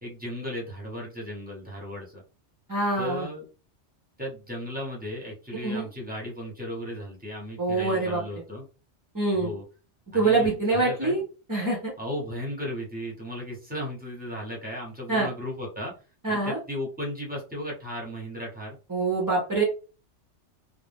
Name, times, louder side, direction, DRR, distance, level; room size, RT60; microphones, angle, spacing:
voice 1, 0.0-2.2 3.0-3.4 4.2-8.7 9.3-9.6 10.1-11.2 12.0-15.9 16.3-18.8, left 1 dB, 10° right, -3 dB, 0.9 m, -35 dB
voice 2, 2.7-3.3 5.6-5.8 7.6-8.2 9.1-9.5 10.1-11.2 11.5-11.9 15.1-15.3 16.2-16.6 18.9-19.6, right 3 dB, 30° right, -3 dB, 0.4 m, -25 dB
2.5 x 2.0 x 3.4 m, 0.34 s
omnidirectional pair, 1.2 m